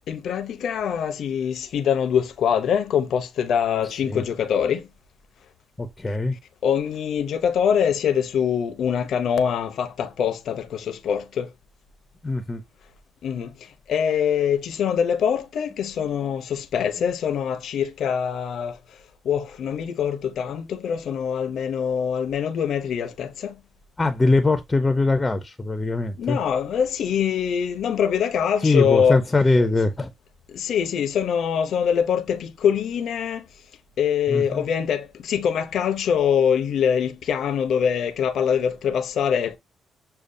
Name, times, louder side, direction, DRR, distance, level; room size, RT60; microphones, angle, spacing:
voice 1, 0.1-4.9 6.6-11.5 13.2-13.5 13.9-18.8 19.2-23.6 26.2-29.2 30.5-33.4 34.0-39.6, left 8 dB, 70° left, 0.6 m, -24 dB
voice 2, 3.8-4.2 5.8-6.3 12.2-12.6 24.0-26.4 28.6-30.1 34.3-34.6, left 3 dB, 20° left, 0.6 m, -22 dB
6.5 x 2.3 x 2.6 m
cardioid pair, 90°, 0 cm